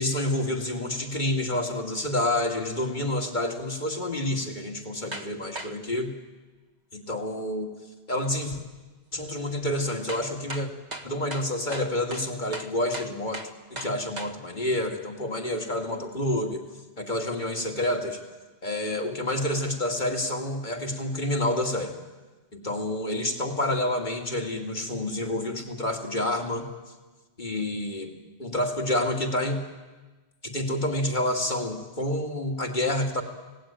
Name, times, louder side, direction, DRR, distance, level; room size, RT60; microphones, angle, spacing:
voice 1, 0.0-6.2 6.9-7.7 8.1-8.6 9.1-10.7 11.0-13.4 13.7-16.7 17.0-18.2 18.6-21.9 22.5-26.7 27.4-28.1 28.4-29.7 30.4-33.2, left 1 dB, 45° left, 3 dB, 2.6 m, -28 dB
sound 1, 5.1-5.3 5.6-5.7 8.2-8.3 10.1-14.3, right 2 dB, 40° right, 1.6 m, -37 dB
26.5 x 18.0 x 9.1 m, 1.3 s
omnidirectional pair, 1.1 m